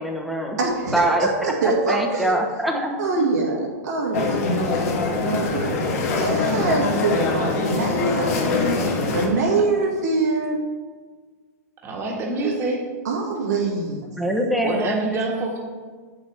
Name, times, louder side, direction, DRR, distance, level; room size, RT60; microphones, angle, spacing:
voice 1, 0.0-0.6 0.9-1.3 1.9-3.3 14.2-15.2, right 1 dB, ahead, 1 dB, 1.1 m, -24 dB
voice 2, 0.6-2.4 3.0-8.4 9.1-10.6 13.0-14.1, right 3 dB, 85° right, -4 dB, 2.2 m, -24 dB
sound 1, 4.1-9.3, left 3 dB, 65° left, 1.6 m, -23 dB
voice 3, 8.9-9.6 11.8-12.8 14.6-15.6, right 3 dB, 30° right, -2 dB, 1.6 m, -27 dB
7.8 x 7.1 x 3.5 m, 1.4 s
hypercardioid pair, 125°, 9 cm